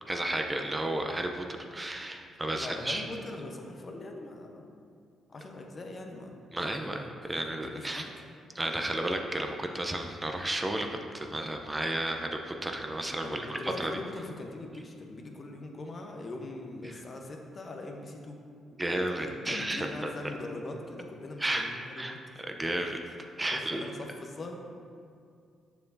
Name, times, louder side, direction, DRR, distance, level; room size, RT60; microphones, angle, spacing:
voice 1, 0.1-1.4 1.7-3.0 6.5-8.0 8.5-14.0 16.8-17.0 18.8-20.1 21.4-21.7 21.9-22.2 22.5-23.0 23.4-23.8, right 1 dB, 20° right, 4 dB, 0.6 m, -32 dB
voice 2, 2.6-4.7 5.3-6.3 7.6-8.1 13.2-18.4 19.2-22.2 23.5-24.5, left 2 dB, 45° left, 2 dB, 0.9 m, -41 dB
6.9 x 6.6 x 2.7 m, 2.3 s
supercardioid pair, 55°, 0 cm